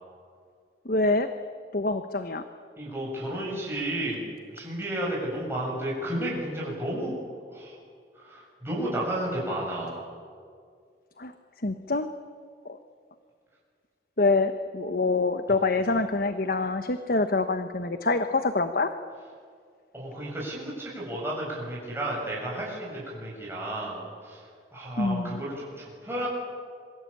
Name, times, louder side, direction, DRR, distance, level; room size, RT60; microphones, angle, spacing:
voice 1, 0.8-1.3 1.7-2.4 11.2-11.3 11.6-12.1 12.6-12.8 14.2-18.9 25.0-25.4, left 3 dB, 50° left, 9 dB, 1.1 m, -25 dB
voice 2, 2.8-4.2 4.5-7.1 7.5-7.8 8.1-10.0 19.9-26.3, right 1 dB, 15° right, -4 dB, 7.6 m, -32 dB
27.0 x 23.5 x 8.8 m, 2.1 s
head